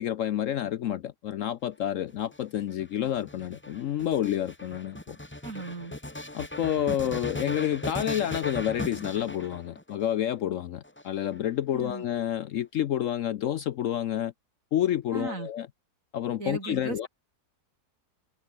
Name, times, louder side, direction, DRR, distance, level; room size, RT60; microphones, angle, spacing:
voice 1, 0.0-5.2 6.3-14.3 14.7-15.7 16.1-17.1, left 11 dB, 65° left, 0.9 m, -29 dB
sound 1, 2.1-10.0 10.8-11.7, left 1 dB, 10° left, 1.1 m, -38 dB
voice 2, 5.4-5.9 11.7-12.0 15.1-15.5 16.4-17.1, right 3 dB, 55° right, 3.3 m, -36 dB
omnidirectional pair, 1.7 m